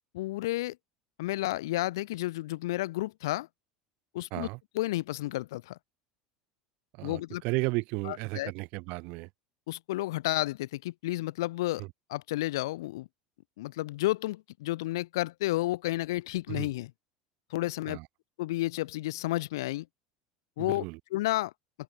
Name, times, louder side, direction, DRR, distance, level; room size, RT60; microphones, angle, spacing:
voice 1, 0.1-0.8 1.2-3.5 4.1-4.5 4.7-5.8 7.0-7.4 8.0-8.5 9.7-11.8 12.1-13.1 13.6-16.9 17.5-18.0 18.4-19.9 20.6-21.5, left 17 dB, 85° left, 3.0 m, -31 dB
voice 2, 7.0-9.3 11.8-11.9 16.5-16.7 17.9-18.0 20.6-21.0, right 27 dB, 65° right, 4.7 m, -34 dB
open air
supercardioid pair, 105°, 2 cm